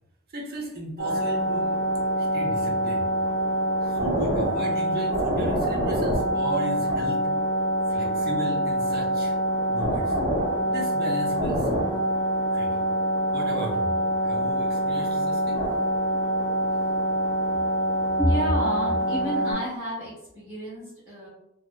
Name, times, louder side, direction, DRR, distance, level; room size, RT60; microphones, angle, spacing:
voice 1, 0.3-3.1 3.8-7.3 7.9-9.3 9.7-10.2 10.6-11.7 12.5-12.8 13.3-15.7, right 1 dB, 50° right, -1 dB, 0.6 m, -35 dB
sound 1, 1.0-19.5, right 1 dB, 90° left, 0.9 m, -25 dB
voice 2, 18.2-21.3, equal, 5° right, -12 dB, 1.1 m, -28 dB
2.7 x 2.1 x 2.2 m, 0.89 s
head